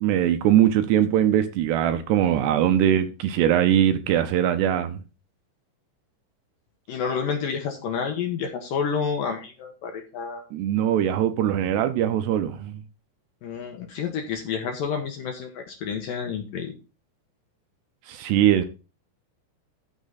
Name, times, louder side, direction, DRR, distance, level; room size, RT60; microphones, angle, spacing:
voice 1, 0.0-5.0 10.5-12.7 18.1-18.6, right 10 dB, 75° right, 2.7 m, -21 dB
voice 2, 6.9-10.4 13.4-16.7, left 6 dB, 70° left, 2.3 m, -29 dB
13.0 x 6.4 x 4.0 m
omnidirectional pair, 5.3 m